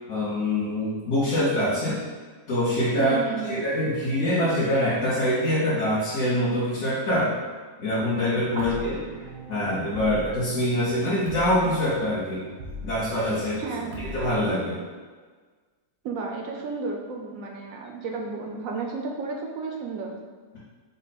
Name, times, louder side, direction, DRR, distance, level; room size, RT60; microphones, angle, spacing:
voice 1, 0.1-2.0 2.5-3.2 3.5-7.3 7.8-8.9 9.5-12.4 12.8-13.6 14.1-14.8, left 1 dB, 55° left, -9 dB, 1.3 m, -24 dB
voice 2, 3.0-3.6 8.6-8.9 13.6-14.1 16.0-20.1, right 4 dB, 70° right, 1 dB, 1.0 m, -32 dB
sound 1, 8.5-14.5, left 1 dB, 90° right, 1.3 m, -40 dB
5.3 x 2.2 x 4.2 m, 1.5 s
omnidirectional pair, 1.6 m